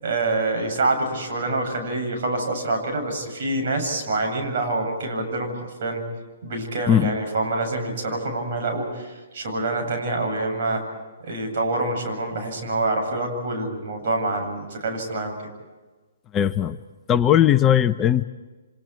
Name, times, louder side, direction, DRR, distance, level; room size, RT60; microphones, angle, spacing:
voice 1, 0.0-6.0 6.4-10.8 11.2-15.3, right 2 dB, 55° right, 3 dB, 8.0 m, -26 dB
voice 2, 16.3-16.8 17.1-18.2, left 10 dB, 20° left, 9 dB, 0.8 m, -18 dB
29.5 x 25.5 x 4.7 m, 1.3 s
hypercardioid pair, 140°, 0 cm